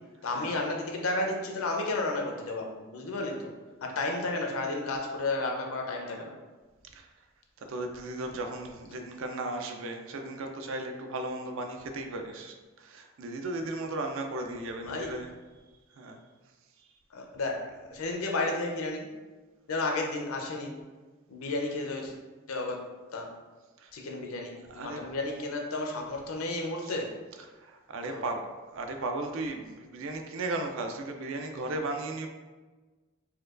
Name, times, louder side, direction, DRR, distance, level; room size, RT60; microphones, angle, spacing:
voice 1, 0.2-3.5 3.8-6.3 14.8-15.1 17.1-19.1 19.7-20.7 21.3-22.1 22.5-22.8 23.1-23.3 23.9-27.2 28.1-28.3, left 2 dB, 75° left, 1 dB, 0.5 m, -32 dB
voice 2, 7.6-15.3 16.0-16.2 23.8-23.9 24.7-25.0 26.8-26.9 27.6-32.3, right 2 dB, 60° right, 4 dB, 0.4 m, -36 dB
4.3 x 2.2 x 2.4 m, 1.3 s
head